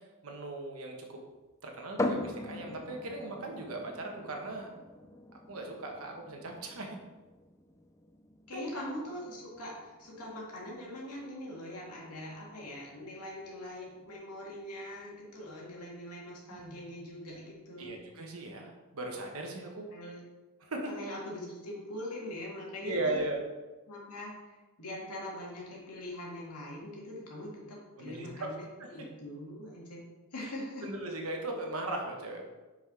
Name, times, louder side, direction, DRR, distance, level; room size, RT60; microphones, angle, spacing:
voice 1, 0.2-1.2 1.6-4.7 5.5-7.0 8.5-8.6 16.5-16.8 17.8-19.9 20.6-20.9 22.8-23.4 28.0-28.5 28.8-29.1 30.8-32.4, right 2 dB, 65° right, 1 dB, 1.1 m, -38 dB
sound 1, 2.0-15.5, left 1 dB, 15° left, 0.4 m, -42 dB
voice 2, 8.5-18.0 19.9-20.2 20.9-23.2 23.9-28.6 28.9-30.9, left 1 dB, 90° left, -3 dB, 2.1 m, -42 dB
5.8 x 4.9 x 4.9 m, 1.2 s
head